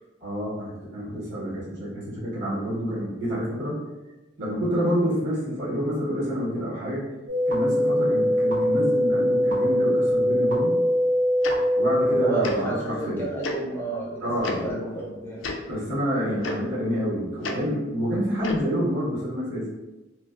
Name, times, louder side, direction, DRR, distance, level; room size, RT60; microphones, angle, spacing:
voice 1, 0.2-3.8 4.4-7.0 7.5-10.8 11.7-13.2 14.2-14.6 15.6-19.7, equal, 70° right, -8 dB, 1.2 m, -28 dB
sound 1, 7.3-12.3, equal, 40° right, 0.5 m, -22 dB
Tick-tock, 11.4-11.5 12.4-12.6 13.4-13.6 14.4-14.5 15.4-15.6 16.4-16.5 17.4-17.5 18.4-18.6, left 3 dB, 85° left, 0.3 m, -30 dB
voice 2, 12.1-15.4, right 2 dB, 10° left, -5 dB, 0.4 m, -30 dB
2.4 x 2.2 x 2.3 m, 1.1 s
head